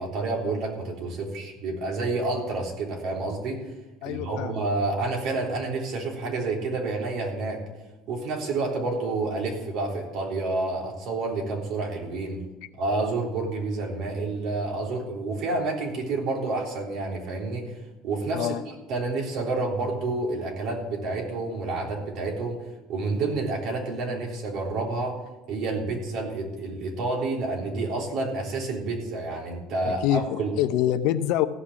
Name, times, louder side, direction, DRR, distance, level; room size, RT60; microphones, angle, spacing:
voice 1, 0.0-3.6 4.1-7.6 8.1-12.4 12.8-17.8 18.0-22.6 22.9-25.2 25.5-30.5, right 3 dB, 60° right, 0 dB, 3.6 m, -29 dB
voice 2, 4.0-4.6 18.3-18.6 29.8-31.5, left 12 dB, 70° left, 11 dB, 0.8 m, -25 dB
15.0 x 6.1 x 8.2 m, 1.0 s
supercardioid pair, 110°, 0 cm